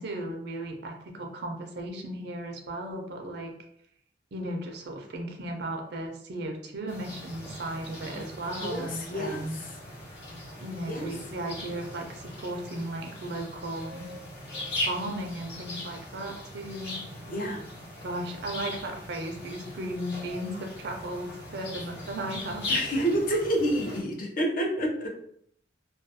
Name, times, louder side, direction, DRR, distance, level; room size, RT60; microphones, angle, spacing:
voice 1, 0.0-3.5 4.3-9.5 10.6-14.1 14.8-17.0 17.3-17.4 18.0-22.8, right 1 dB, 65° right, 3 dB, 0.5 m, -36 dB
sound 1, 6.9-24.0, left 1 dB, 70° left, 0.9 m, -39 dB
voice 2, 8.2-9.8 10.9-11.1 17.3-17.6 22.7-25.1, right 1 dB, 50° left, 0 dB, 0.6 m, -29 dB
2.3 x 2.2 x 2.6 m, 0.69 s
head